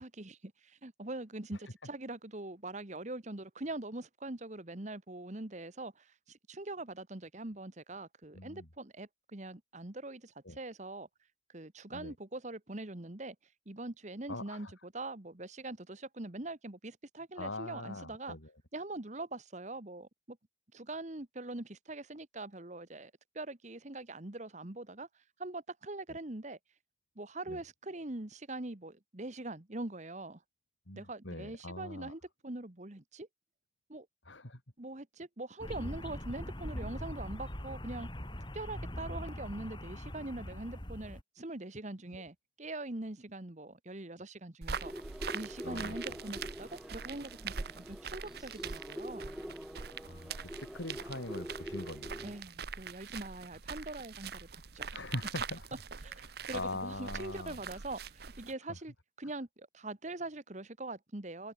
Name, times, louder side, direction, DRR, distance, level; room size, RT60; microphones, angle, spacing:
voice 1, 0.0-11.1 11.5-13.3 13.6-18.4 18.7-20.4 20.7-25.1 25.4-26.6 27.1-30.4 30.9-33.3 33.9-34.1 34.8-38.1 38.5-44.9 45.3-49.3 52.2-55.0 56.0-61.5, right 2 dB, 40° right, 1.5 m, -43 dB
voice 2, 8.3-8.7 10.4-10.6 11.9-12.1 14.3-14.7 17.4-18.5 26.1-26.2 27.5-27.6 30.9-32.1 34.2-34.6 42.1-42.2 45.6-46.3 50.0-52.3 54.9-55.8 56.4-57.6, left 2 dB, 80° left, 6.7 m, -42 dB
sound 1, 35.6-41.2, left 1 dB, 25° left, 2.8 m, -42 dB
sound 2, 44.6-58.5, right 6 dB, 55° right, 0.9 m, -43 dB
sound 3, 44.8-52.4, equal, ahead, 1.6 m, -45 dB
open air
head